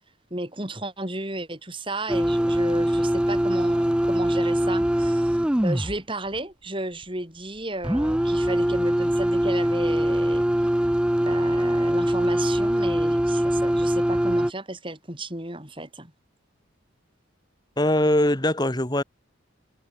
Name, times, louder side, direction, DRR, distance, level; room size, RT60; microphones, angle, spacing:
voice 1, 0.3-5.4 5.6-10.4 11.2-16.1, right 2 dB, 25° right, 5.2 m, -33 dB
sound 1, 2.1-6.0 7.8-14.5, equal, 5° right, 0.3 m, -22 dB
voice 2, 17.8-19.0, left 1 dB, 20° left, 2.0 m, -21 dB
head